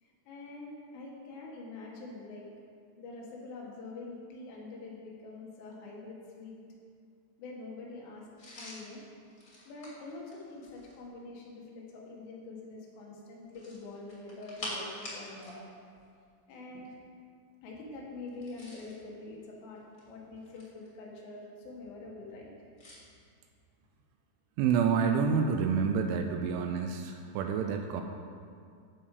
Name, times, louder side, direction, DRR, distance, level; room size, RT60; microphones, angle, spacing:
voice 1, 0.0-2.5 3.0-6.6 7.4-9.0 9.7-15.6 16.5-16.9 17.6-22.5, left 3 dB, 85° left, -3 dB, 4.3 m, -45 dB
sound 1, 8.4-11.0 13.5-15.6 15.9-16.1 18.3-19.0 19.8-20.9 22.8-23.0, left 1 dB, 25° left, 2.1 m, -45 dB
voice 2, 24.6-28.0, right 6 dB, 85° right, 4 dB, 3.0 m, -28 dB
14.5 x 7.2 x 5.0 m, 2.3 s
omnidirectional pair, 5.5 m